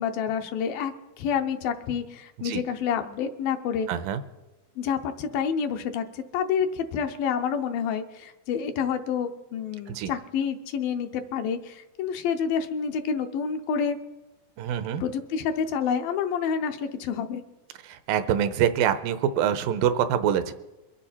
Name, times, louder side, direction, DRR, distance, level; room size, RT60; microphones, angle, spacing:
voice 1, 0.0-3.9 4.8-14.0 15.0-17.4, left 7 dB, 85° left, 6 dB, 2.7 m, -28 dB
voice 2, 3.9-4.2 9.9-10.1 14.6-15.0 17.8-20.5, right 9 dB, 90° right, 12 dB, 2.4 m, -25 dB
23.0 x 9.6 x 4.3 m, 1.1 s
omnidirectional pair, 4.1 m